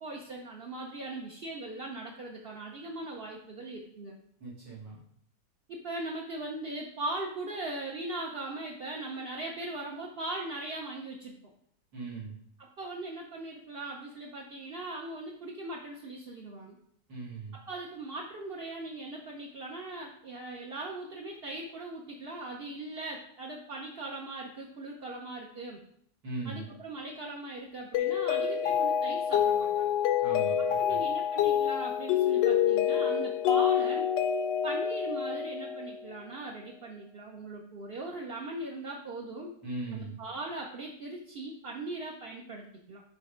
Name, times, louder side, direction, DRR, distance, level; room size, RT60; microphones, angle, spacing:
voice 1, 0.0-4.2 5.7-11.4 12.6-16.8 17.5-25.8 26.4-29.9 30.8-34.1 34.6-39.5 39.9-43.0, right 2 dB, 55° right, -1 dB, 0.7 m, -39 dB
voice 2, 4.4-5.0 11.9-12.4 17.1-17.6 26.2-26.7 30.2-31.0 39.6-40.2, right 3 dB, 90° right, -7 dB, 3.2 m, -39 dB
Mallet percussion, 27.9-36.1, left 9 dB, 80° left, 1.2 m, -27 dB
7.7 x 3.1 x 5.0 m, 0.66 s
omnidirectional pair, 1.9 m